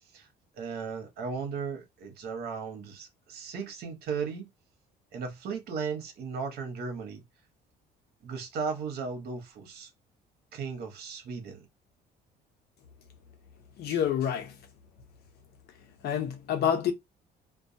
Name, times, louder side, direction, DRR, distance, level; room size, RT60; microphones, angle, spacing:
voice 1, 0.6-4.5 5.1-7.2 8.2-9.9 10.5-11.7, right 5 dB, 70° right, 0.9 m, -36 dB
voice 2, 13.8-14.6 16.0-16.9, left 9 dB, 70° left, 0.8 m, -28 dB
2.2 x 2.2 x 2.7 m
cardioid pair, 110°, 17 cm